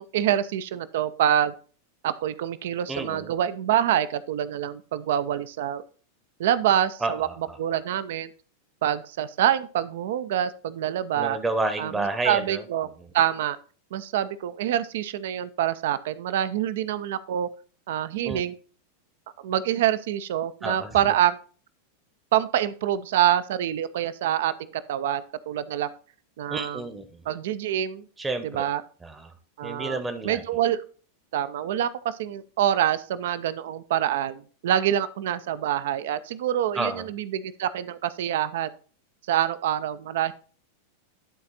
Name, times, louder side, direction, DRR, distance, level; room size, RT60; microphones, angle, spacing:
voice 1, 0.0-1.5 2.0-5.8 6.4-7.3 7.6-8.3 8.8-11.4 11.8-11.9 12.2-12.9 13.1-13.6 13.9-17.5 17.9-18.5 19.4-21.4 22.3-25.9 26.4-26.8 27.3-28.0 28.5-28.8 29.6-30.8 31.3-38.7 39.3-40.3, right 11 dB, 55° right, 15 dB, 0.5 m, -26 dB
voice 2, 2.9-3.3 7.0-7.6 11.1-12.6 13.0-13.1 18.2-18.4 20.6-21.0 26.5-27.3 28.2-28.6 29.0-29.3 29.6-30.4 36.7-37.1, right 2 dB, 15° right, 8 dB, 0.8 m, -30 dB
11.5 x 4.1 x 4.1 m, 0.39 s
figure-of-eight pair, 90°, 0 cm